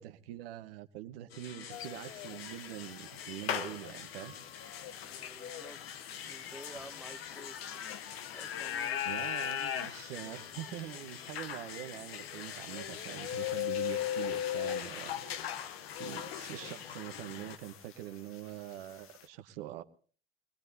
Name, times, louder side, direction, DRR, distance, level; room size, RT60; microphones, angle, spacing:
voice 1, 0.0-4.3 9.0-15.2 16.0-19.8, right 13 dB, 75° right, 1.1 m, -44 dB
sound 1, 1.3-17.6, left 9 dB, 85° left, 1.0 m, -43 dB
sound 2, 1.7-17.0 17.3-19.2, left 10 dB, 45° left, 1.1 m, -40 dB
voice 2, 5.0-5.8 6.3-7.6 8.3-9.1, right 1 dB, ahead, 1.1 m, -51 dB
25.5 x 19.5 x 2.7 m
hypercardioid pair, 75°, 30 cm